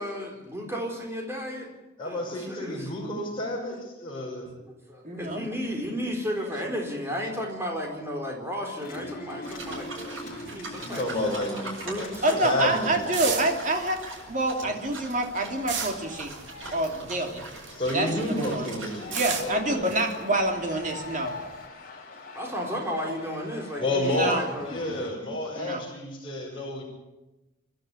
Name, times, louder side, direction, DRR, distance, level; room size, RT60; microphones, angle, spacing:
voice 1, 0.0-1.7 2.0-2.9 4.7-13.0 14.6-14.8 22.3-24.9, equal, 15° right, 0 dB, 4.2 m, -34 dB
voice 2, 2.0-4.5 10.8-12.9 17.7-19.1 19.4-19.9 22.1-22.2 23.8-24.4 24.7-26.8, left 1 dB, 25° left, -3 dB, 5.9 m, -30 dB
voice 3, 5.0-5.5 12.2-14.0 14.3-16.3 16.7-17.4 17.9-18.7 19.1-21.3 24.0-24.4 25.5-25.8, right 1 dB, 40° right, 3 dB, 2.9 m, -27 dB
sound 1, 8.8-25.1, left 2 dB, 45° left, 3.7 m, -44 dB
sound 2, 9.4-19.2, right 2 dB, 90° right, 8.0 m, -42 dB
sound 3, 11.9-17.9 18.2-21.6, right 6 dB, 70° right, 2.7 m, -36 dB
29.0 x 12.5 x 8.5 m, 1.0 s
head